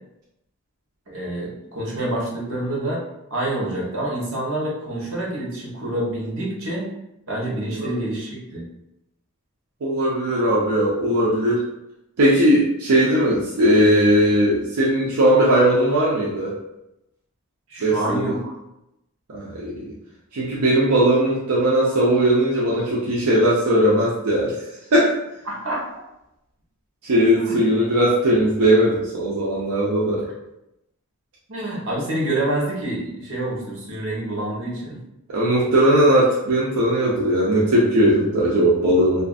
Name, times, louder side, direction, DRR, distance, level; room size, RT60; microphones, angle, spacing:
voice 1, 1.1-3.0 3.3-6.9 7.3-8.6 17.7-18.5 25.5-25.8 27.3-27.6 31.5-35.0, right 1 dB, 60° right, -4 dB, 0.9 m, -27 dB
voice 2, 9.8-11.6 12.2-16.5 17.8-18.4 19.3-19.9 20.3-24.5 24.9-25.1 27.0-30.3 35.3-39.2, right 1 dB, 85° right, -6 dB, 0.5 m, -18 dB
2.4 x 2.4 x 2.4 m, 0.87 s
head